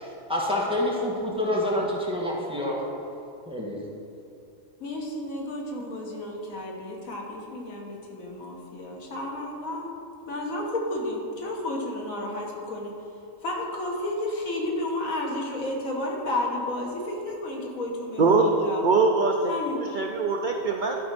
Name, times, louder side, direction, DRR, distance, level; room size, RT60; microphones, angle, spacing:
voice 1, 0.0-2.8 3.5-3.8, left 1 dB, 5° right, -4 dB, 1.4 m, -27 dB
voice 2, 4.8-9.9 10.3-12.9 13.4-18.8 19.5-19.8, left 1 dB, 80° left, -1 dB, 1.7 m, -32 dB
voice 3, 18.2-19.5 19.9-21.1, right 3 dB, 60° right, 2 dB, 0.5 m, -22 dB
12.0 x 4.2 x 5.9 m, 2.6 s
omnidirectional pair, 1.4 m